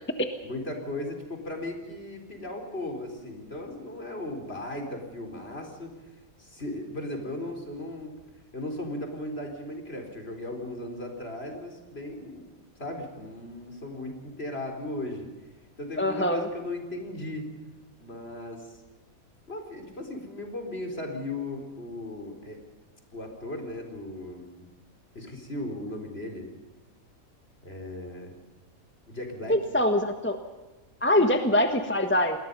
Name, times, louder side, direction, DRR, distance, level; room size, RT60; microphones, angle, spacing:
voice 1, 0.4-6.0 6.4-8.2 8.5-12.5 12.8-15.3 15.8-17.5 18.0-18.8 19.5-22.6 23.1-24.6 25.1-26.5 27.6-28.3 29.1-29.6, left 1 dB, 45° left, 4 dB, 4.5 m, -37 dB
voice 2, 16.0-16.5 29.5-30.4 31.0-32.4, left 1 dB, 10° left, 6 dB, 1.4 m, -23 dB
29.0 x 21.0 x 5.5 m, 1.2 s
omnidirectional pair, 1.5 m